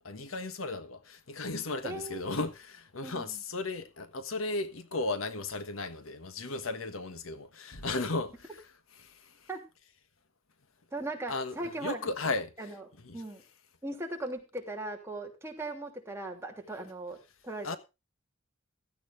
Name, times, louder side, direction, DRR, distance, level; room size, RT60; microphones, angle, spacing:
voice 1, 0.0-8.6 9.0-9.3 11.3-12.5 13.0-13.2 17.6-17.8, left 3 dB, 90° left, 1.4 m, -35 dB
voice 2, 1.8-2.2 3.0-3.4 9.5-9.6 10.9-12.0 12.6-12.8 13.1-13.4 13.8-17.2 17.4-17.8, right 2 dB, 15° right, 2.9 m, -38 dB
15.5 x 13.5 x 2.6 m
head